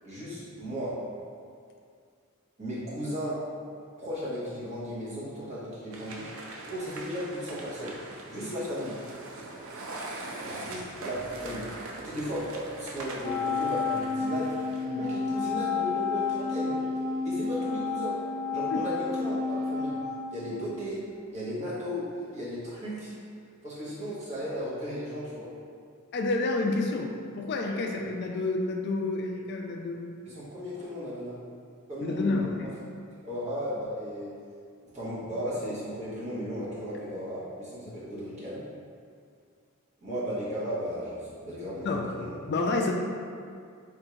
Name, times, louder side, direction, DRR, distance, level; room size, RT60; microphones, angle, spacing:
voice 1, 0.0-1.0 2.6-3.4 4.0-6.3 6.6-8.0 8.3-9.0 10.4-11.7 12.0-14.6 15.0-16.8 17.2-18.2 18.5-20.0 20.3-21.1 21.3-23.1 23.6-25.5 27.9-28.1 30.2-31.4 31.9-32.5 33.2-34.3 34.9-38.6 40.0-42.4, equal, 30° right, -9 dB, 1.1 m, -35 dB
sound 1, 5.9-14.8, right 2 dB, 65° right, 0.5 m, -42 dB
Wind instrument woodwind instrument, 13.2-20.9, left 4 dB, 15° left, 0.8 m, -30 dB
voice 2, 26.1-30.1 32.0-32.7 41.8-42.1 42.5-42.9, left 3 dB, 50° left, 2 dB, 0.3 m, -29 dB
3.6 x 2.6 x 4.4 m, 2.2 s
head